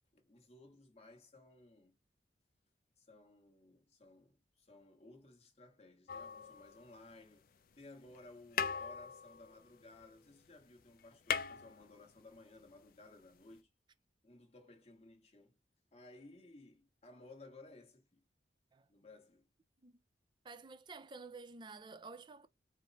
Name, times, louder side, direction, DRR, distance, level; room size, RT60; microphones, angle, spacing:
voice 1, 0.1-1.9 3.0-7.5 7.8-13.7 14.2-15.6 15.9-18.2 18.9-19.5, left 2 dB, 40° left, 1.2 m, -58 dB
sound 1, 6.1-7.2 8.1-8.3 8.5-10.4 10.7-10.8 11.0-12.4 13.6-13.7, left 7 dB, 55° left, 0.4 m, -40 dB
voice 2, 20.4-22.5, right 3 dB, 25° right, 0.4 m, -51 dB
4.8 x 2.0 x 3.9 m
head